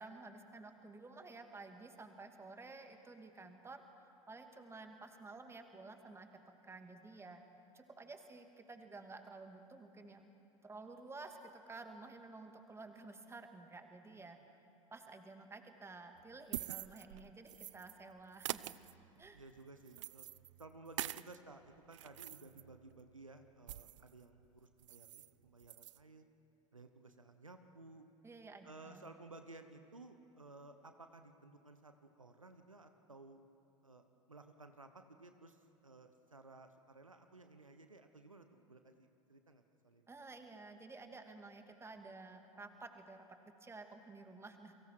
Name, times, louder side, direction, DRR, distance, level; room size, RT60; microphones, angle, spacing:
voice 1, 0.0-3.8 4.3-6.3 6.6-7.4 7.7-10.3 10.6-14.4 14.9-18.7 19.2-19.4 28.2-29.1 40.1-43.3 43.6-44.7, right 3 dB, 15° right, 6 dB, 2.1 m, -52 dB
sound 1, 16.2-18.0 18.3-21.4 21.8-24.1 24.4-24.5 24.8-25.3 25.6-26.0, right 14 dB, 70° right, 0.4 m, -46 dB
voice 2, 19.3-20.3 20.6-26.3 26.7-28.1 28.6-33.4 33.8-40.1, right 2 dB, 90° right, 7 dB, 1.0 m, -57 dB
30.0 x 23.5 x 4.6 m, 2.9 s
figure-of-eight pair, 75°, 16 cm